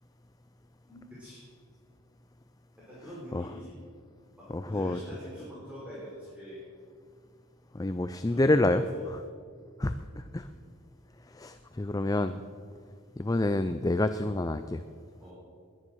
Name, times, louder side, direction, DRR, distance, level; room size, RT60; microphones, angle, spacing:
voice 1, 0.9-1.4 2.9-3.7 4.4-6.6 8.3-9.0 10.5-10.6 15.2-15.3, equal, 5° right, -8 dB, 4.3 m, -45 dB
voice 2, 4.5-5.0 7.7-9.2 9.8-10.5 11.3-12.4 13.2-14.8, left 2 dB, 15° left, 10 dB, 0.4 m, -28 dB
21.0 x 10.0 x 6.4 m, 2.2 s
head